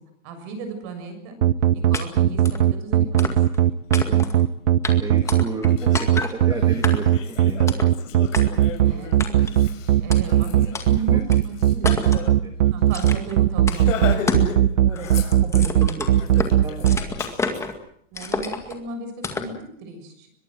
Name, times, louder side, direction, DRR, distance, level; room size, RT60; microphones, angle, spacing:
voice 1, 0.2-1.3 1.7-3.3 8.8-9.2 10.0-11.5 11.8-12.0 12.7-14.4 18.1-20.3, right 4 dB, 35° right, 7 dB, 6.7 m, -35 dB
sound 1, 1.4-17.0, right 12 dB, 65° right, 1.2 m, -17 dB
sound 2, 1.9-2.0 2.4-2.6 3.2-3.6 3.9-4.4 4.8-4.9 5.3-5.7 5.9-6.3 6.8-7.2 7.7-7.9 8.3-8.4 9.2-9.6 10.1-10.2 10.7-10.9 11.3-11.4 11.8-12.3 12.9-13.3 13.7-13.8 14.3-14.5 14.8-16.5 16.8-17.7 18.1-18.8 19.2-19.5, left 4 dB, 5° left, 2.1 m, -29 dB
voice 2, 4.1-4.4 4.9-7.9 11.0-11.2 11.6-12.2 12.4-12.6 14.7-17.0, right 4 dB, 10° right, 5 dB, 1.6 m, -35 dB
Laughter, 5.2-5.3 5.7-12.3 12.6-12.8 13.0-13.2 13.6-14.6 14.9-15.7 16.1-17.6, left 7 dB, 75° left, 6.6 m, -35 dB
23.0 x 22.0 x 7.8 m, 0.65 s
supercardioid pair, 165°, 38 cm